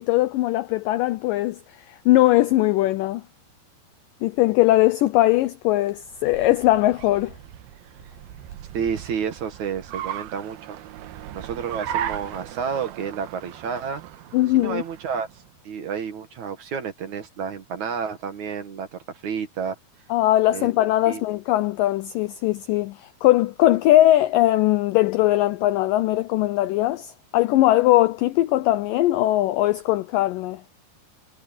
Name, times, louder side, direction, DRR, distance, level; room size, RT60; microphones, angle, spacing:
voice 1, 0.0-1.6 1.9-3.2 4.2-7.3 14.3-14.8 20.1-30.6, left 15 dB, 85° left, 1.9 m, -20 dB
Car, 6.0-15.5, right 10 dB, 75° right, 2.9 m, -37 dB
voice 2, 8.7-10.8 11.3-14.0 14.5-15.3 15.6-19.8 20.5-20.7 21.1-21.2, right 7 dB, 55° right, 2.7 m, -30 dB
omnidirectional pair, 4.6 m